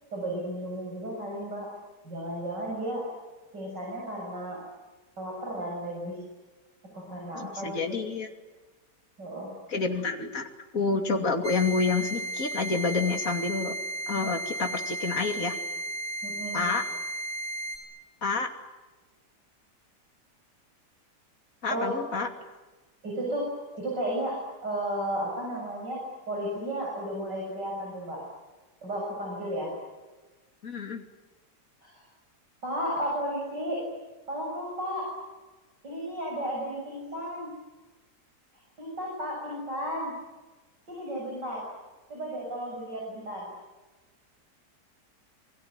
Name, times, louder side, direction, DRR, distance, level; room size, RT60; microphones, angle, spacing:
voice 1, 0.1-1.7 2.0-3.1 3.5-4.6 5.2-6.2 6.9-7.8 9.2-9.5 16.2-16.7 21.7-22.0 23.0-28.2 28.8-29.7 31.8-32.0 32.6-33.9 34.3-35.1 35.8-37.5 38.8-40.1 40.9-41.7 42.1-43.5, right 1 dB, 90° right, -2 dB, 8.0 m, -33 dB
voice 2, 7.3-8.3 9.7-10.5 10.7-15.6 16.5-16.8 18.2-18.5 21.6-22.3 30.6-31.0, left 4 dB, 50° left, 4 dB, 3.1 m, -28 dB
sound 1, 11.4-17.8, right 1 dB, 50° right, 5.4 m, -34 dB
28.0 x 22.5 x 9.4 m, 1.2 s
omnidirectional pair, 1.8 m